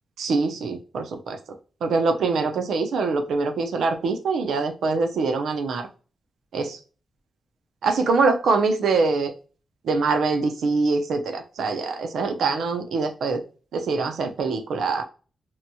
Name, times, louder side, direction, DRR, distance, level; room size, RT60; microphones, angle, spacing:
voice 1, 0.2-1.4 1.8-5.9 6.5-6.8 7.8-9.3 9.8-13.4 13.7-15.0, right 4 dB, 85° right, 6 dB, 0.5 m, -24 dB
2.9 x 2.2 x 2.6 m, 0.37 s
wide cardioid pair, 160°, 0 cm